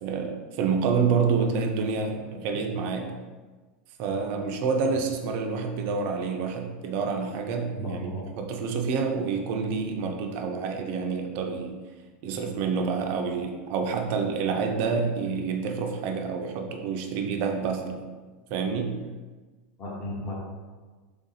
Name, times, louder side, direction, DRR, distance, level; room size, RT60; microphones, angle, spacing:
voice 1, 0.0-3.1 4.0-11.8 12.2-18.1 18.5-19.0, right 5 dB, 40° right, 4 dB, 0.5 m, -28 dB
voice 2, 7.7-8.2 19.8-20.3, equal, 25° left, -4 dB, 0.8 m, -34 dB
3.5 x 2.6 x 3.9 m, 1.3 s
supercardioid pair, 165°, 6 cm